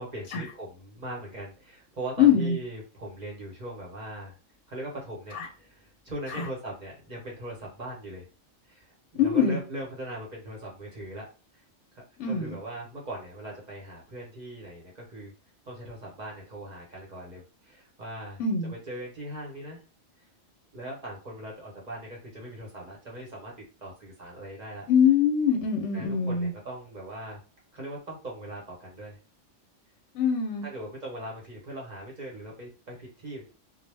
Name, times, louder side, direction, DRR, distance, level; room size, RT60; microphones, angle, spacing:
voice 1, 0.0-4.3 4.7-8.3 8.6-8.9 9.1-11.3 11.5-11.6 11.9-15.3 15.6-19.8 20.7-23.5 23.8-24.9 25.9-27.4 27.7-29.2 30.6-33.5, right 1 dB, 40° right, -2 dB, 0.8 m, -40 dB
voice 2, 2.2-2.6 5.3-5.5 6.3-6.5 9.1-9.6 12.2-12.6 18.4-18.7 24.9-26.5 30.1-30.7, left 7 dB, 70° left, 2 dB, 0.8 m, -23 dB
2.2 x 2.0 x 3.2 m, 0.34 s
omnidirectional pair, 1.3 m